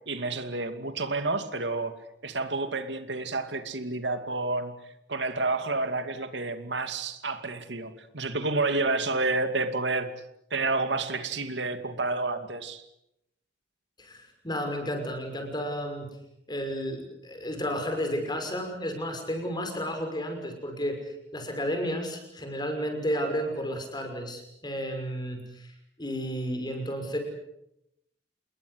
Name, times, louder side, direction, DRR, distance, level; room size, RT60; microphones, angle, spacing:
voice 1, 0.1-1.9 2.2-4.7 5.1-10.1 10.5-12.8, right 3 dB, 90° right, 9 dB, 2.5 m, -29 dB
voice 2, 14.0-16.1 16.5-21.0 21.3-25.7 26.0-27.2, equal, 25° left, 5 dB, 6.1 m, -32 dB
28.5 x 21.0 x 8.2 m, 0.82 s
head